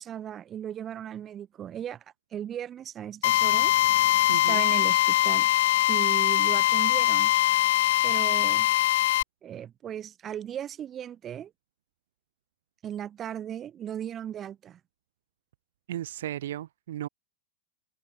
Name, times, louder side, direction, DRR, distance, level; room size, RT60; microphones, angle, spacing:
voice 1, 0.0-2.0 2.3-3.8 4.4-5.5 5.9-7.3 8.0-8.7 9.4-11.5 12.8-14.8, right 10 dB, 30° right, 4.2 m, -36 dB
Drill, 3.2-9.2, left 15 dB, 55° left, 0.4 m, -22 dB
voice 2, 4.3-4.6 15.9-17.1, right 12 dB, 60° right, 4.5 m, -35 dB
figure-of-eight pair, 90°, 0 cm